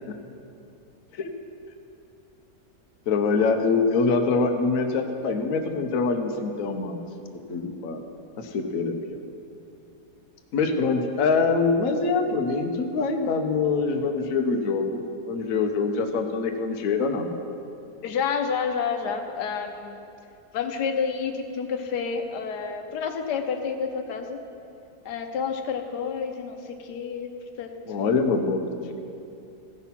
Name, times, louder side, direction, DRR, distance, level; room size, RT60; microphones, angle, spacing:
voice 1, 3.1-7.0 7.5-8.0 8.4-9.2 10.5-17.3 27.9-28.6, left 4 dB, 60° left, 5 dB, 1.1 m, -24 dB
voice 2, 18.0-20.0 20.5-24.4 25.0-27.3 27.6-28.4, left 6 dB, 90° left, 5 dB, 1.4 m, -29 dB
15.5 x 5.8 x 5.7 m, 2.6 s
omnidirectional pair, 1.7 m